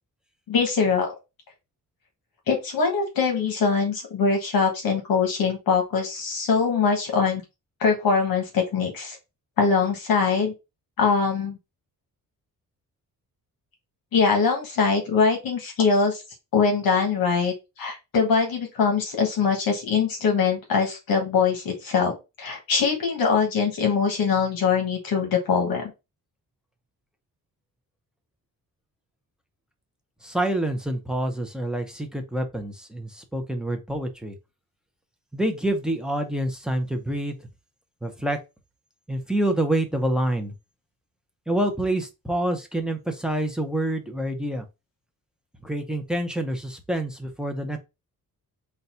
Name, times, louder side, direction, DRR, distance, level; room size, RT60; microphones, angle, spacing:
voice 1, 0.5-1.1 2.5-7.4 7.8-9.2 9.6-10.5 11.0-11.6 14.1-16.2 16.5-22.1 22.4-25.8, left 5 dB, 70° left, 1.3 m, -22 dB
voice 2, 30.2-34.4 35.3-37.3 38.0-38.4 39.1-40.5 41.5-44.7 45.6-47.8, right 1 dB, ahead, 0.5 m, -27 dB
4.0 x 2.2 x 4.2 m
wide cardioid pair, 175°, 36 cm